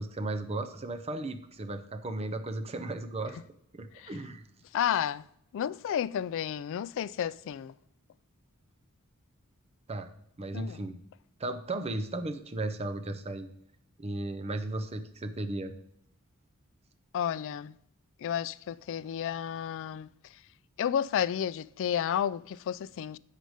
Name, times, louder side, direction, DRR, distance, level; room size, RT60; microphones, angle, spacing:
voice 1, 0.0-3.4 3.7-4.4 9.9-10.1 10.4-11.0 11.4-13.5 14.0-15.7, right 2 dB, 30° right, 0.6 m, -35 dB
voice 2, 4.7-5.2 5.5-7.7 10.5-10.8 17.1-17.7 18.2-20.1 20.8-23.2, left 9 dB, 60° left, 0.3 m, -31 dB
7.8 x 6.5 x 4.9 m
head